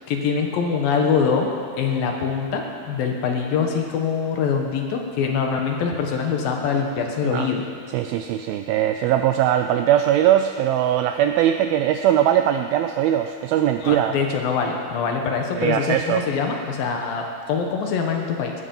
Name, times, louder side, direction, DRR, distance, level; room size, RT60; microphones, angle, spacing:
voice 1, 0.1-1.5 1.8-7.7 13.8-18.5, left 6 dB, 65° left, 2 dB, 2.8 m, -24 dB
voice 2, 7.9-14.2 15.6-16.2, right 11 dB, 85° right, 7 dB, 2.1 m, -20 dB
18.0 x 13.5 x 5.4 m, 2.3 s
omnidirectional pair, 4.7 m